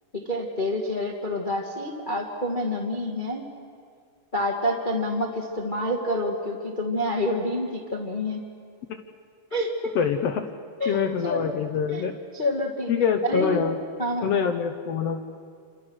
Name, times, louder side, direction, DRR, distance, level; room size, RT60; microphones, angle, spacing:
voice 1, 0.1-3.4 4.3-8.4 9.5-9.9 10.8-11.4 11.9-12.1 12.3-13.6 14.0-14.3, left 1 dB, 25° left, 0 dB, 1.2 m, -28 dB
voice 2, 9.9-10.4 10.9-12.1 12.9-13.8 14.2-15.3, left 7 dB, 70° left, 7 dB, 1.6 m, -25 dB
28.5 x 26.5 x 6.3 m, 2.2 s
omnidirectional pair, 3.8 m